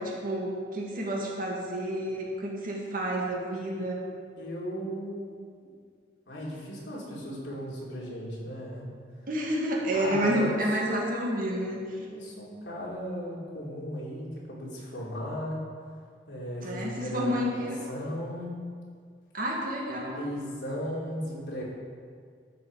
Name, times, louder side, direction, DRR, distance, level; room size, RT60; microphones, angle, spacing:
voice 1, 0.0-4.1 9.3-11.8 16.6-17.8 19.3-20.2, equal, 50° right, -2 dB, 2.0 m, -30 dB
voice 2, 4.4-5.3 5.6-5.7 6.3-8.9 9.9-15.7 16.3-18.6 20.2-21.6, equal, 90° left, -5 dB, 3.0 m, -36 dB
12.5 x 7.2 x 4.8 m, 2.1 s
head